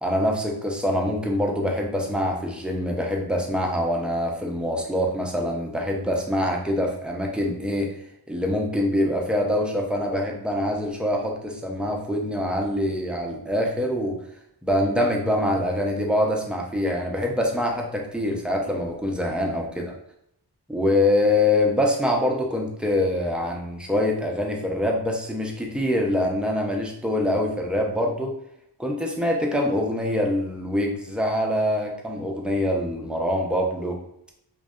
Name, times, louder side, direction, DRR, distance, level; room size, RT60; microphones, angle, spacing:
voice 1, 0.0-7.9 8.3-14.2 14.6-19.8 20.7-28.3 28.8-34.0, left 1 dB, ahead, 0 dB, 0.4 m, -24 dB
2.6 x 2.2 x 2.3 m, 0.74 s
wide cardioid pair, 60°, 40 cm